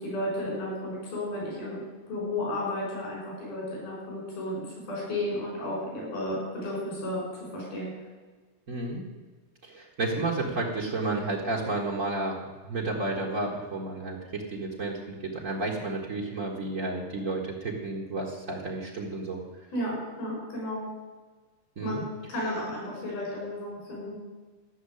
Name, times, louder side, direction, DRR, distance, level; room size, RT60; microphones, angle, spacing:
voice 1, 0.0-1.8 2.1-7.9 19.7-20.9 21.8-22.0 22.3-24.2, left 1 dB, 85° left, -4 dB, 7.7 m, -33 dB
voice 2, 8.7-9.0 9.6-12.4 12.7-19.4 21.8-22.0, right 2 dB, 75° right, -3 dB, 0.7 m, -31 dB
14.5 x 6.5 x 9.9 m, 1.3 s
omnidirectional pair, 4.2 m